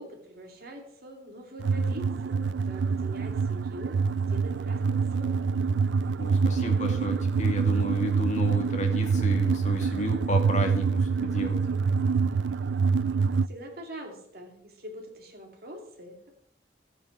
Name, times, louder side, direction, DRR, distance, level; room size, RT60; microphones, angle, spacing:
voice 1, 0.0-5.7 13.5-16.3, equal, 55° right, 2 dB, 2.7 m, -44 dB
sound 1, 1.6-13.5, right 5 dB, 85° right, 0.4 m, -26 dB
voice 2, 6.2-11.7, equal, 45° left, 3 dB, 2.2 m, -32 dB
15.0 x 9.0 x 4.6 m, 0.72 s
head